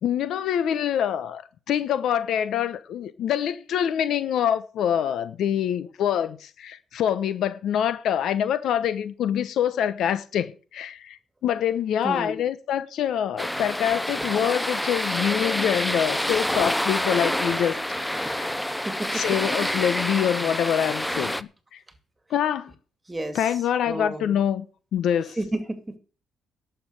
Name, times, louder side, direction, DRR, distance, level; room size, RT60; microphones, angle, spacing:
voice 1, 0.0-1.4 1.7-18.5 19.1-21.4 21.7-21.8 22.3-22.7 23.3-24.7 24.9-25.4, left 9 dB, 75° left, 1.1 m, -25 dB
voice 2, 12.0-12.4 18.8-19.2 23.1-23.4 23.9-24.4 25.4-26.0, right 1 dB, 15° right, 2.5 m, -31 dB
sound 1, 13.4-21.4, left 1 dB, 5° left, 0.7 m, -27 dB
11.5 x 7.2 x 8.1 m
cardioid pair, 90°, 0 cm